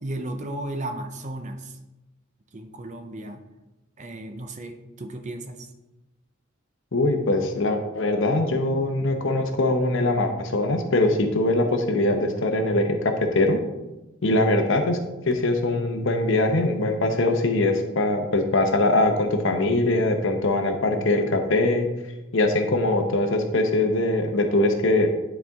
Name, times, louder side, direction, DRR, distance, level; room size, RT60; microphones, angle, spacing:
voice 1, 0.0-1.8 2.5-3.4 4.0-5.7, right 1 dB, 35° right, 6 dB, 0.6 m, -34 dB
voice 2, 6.9-13.6 14.2-15.0 15.3-21.9 22.3-25.1, left 2 dB, 65° left, 5 dB, 0.9 m, -22 dB
10.5 x 4.4 x 3.6 m, 1.0 s
head